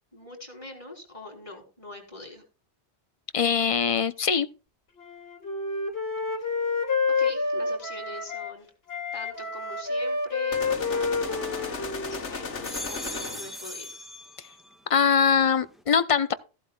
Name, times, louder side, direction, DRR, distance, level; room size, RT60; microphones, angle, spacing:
voice 1, 0.1-2.4 7.1-8.7 9.1-14.0, left 2 dB, 30° left, 3.6 m, -43 dB
voice 2, 3.3-4.5 14.9-16.3, left 6 dB, 45° left, 0.5 m, -22 dB
Wind instrument woodwind instrument, 5.0-8.5 8.9-12.6, left 4 dB, 60° left, 2.3 m, -29 dB
sound 1, 10.5-13.7, left 4 dB, 80° left, 1.6 m, -35 dB
sound 2, 10.8-12.0 12.4-14.8 15.2-15.8, equal, ahead, 1.3 m, -41 dB
15.0 x 11.5 x 2.3 m
omnidirectional pair, 1.2 m